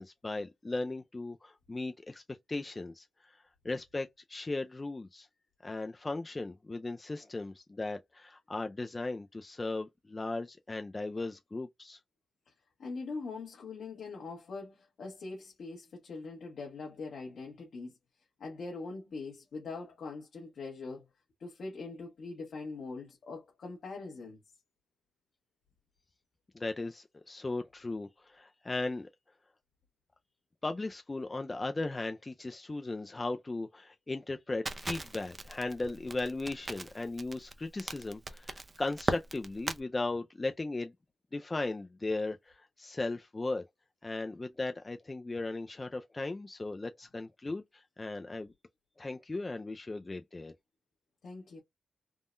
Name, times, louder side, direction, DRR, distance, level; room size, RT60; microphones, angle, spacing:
voice 1, 0.0-2.2 2.5-5.3 5.6-12.0 26.5-29.1 30.6-40.9 41.3-43.6 44.0-48.5 49.0-50.5, left 2 dB, 25° left, 0.4 m, -37 dB
voice 2, 12.8-18.0 18.4-21.1 21.4-24.4 51.2-51.6, left 3 dB, 75° left, 1.1 m, -42 dB
Crackle, 34.7-39.8, right 2 dB, 30° right, 0.6 m, -38 dB
3.6 x 2.1 x 2.5 m
cardioid pair, 90°, 0 cm